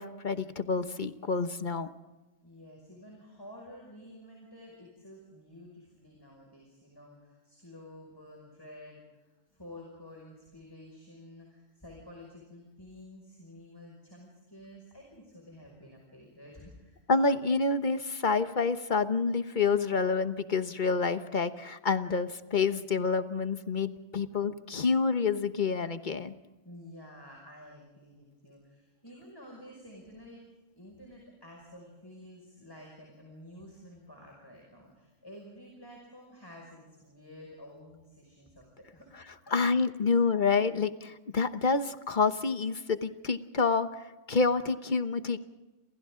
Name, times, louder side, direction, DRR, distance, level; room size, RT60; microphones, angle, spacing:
voice 1, 0.0-1.9 17.1-26.3 39.5-45.4, left 4 dB, 40° left, 10 dB, 1.2 m, -28 dB
voice 2, 2.4-17.0 26.6-30.4 30.8-39.1 39.4-39.7 40.1-40.2, left 1 dB, 20° left, -1 dB, 5.7 m, -51 dB
30.0 x 28.0 x 3.8 m, 1.1 s
omnidirectional pair, 1.3 m